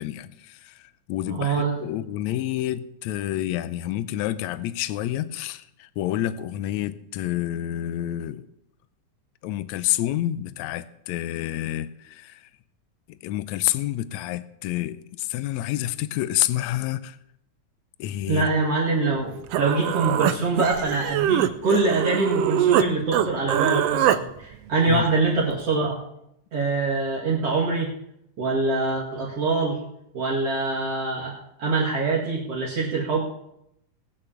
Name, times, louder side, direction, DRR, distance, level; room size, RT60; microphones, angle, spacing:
voice 1, 0.0-8.5 9.4-12.5 13.2-17.2 18.0-18.5 24.9-25.0, left 14 dB, 75° left, 1.8 m, -28 dB
voice 2, 1.3-1.7 18.3-26.0 26.5-27.9 28.4-29.8 30.1-33.2, right 3 dB, 50° right, 3.0 m, -24 dB
Human voice, 19.2-19.3 19.5-22.9 23.1-24.2, right 11 dB, 80° right, 1.4 m, -23 dB
19.5 x 6.6 x 7.0 m
omnidirectional pair, 3.6 m